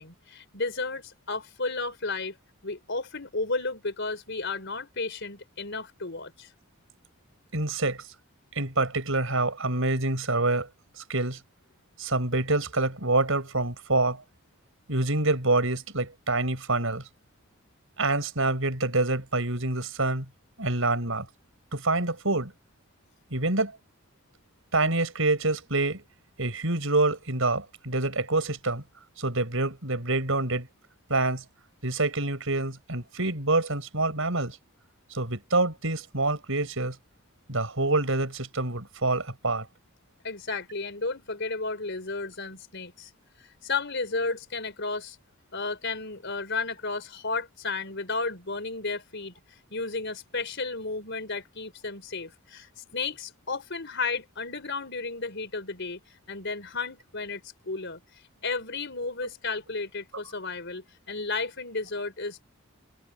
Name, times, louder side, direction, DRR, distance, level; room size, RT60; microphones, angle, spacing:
voice 1, 0.0-2.3 2.6-6.5 40.2-43.1 43.4-45.2 45.5-49.3 49.7-56.0 56.3-58.0 58.4-62.4, left 3 dB, 55° left, 4.6 m, -33 dB
voice 2, 7.5-8.0 8.5-10.7 11.1-11.4 12.0-14.2 14.9-17.0 18.0-20.3 20.6-21.3 21.7-22.5 23.3-23.7 24.7-26.0 26.4-28.8 29.2-30.7 31.1-31.4 31.8-34.6 35.1-37.0 37.5-39.7, right 2 dB, 70° right, 5.7 m, -26 dB
head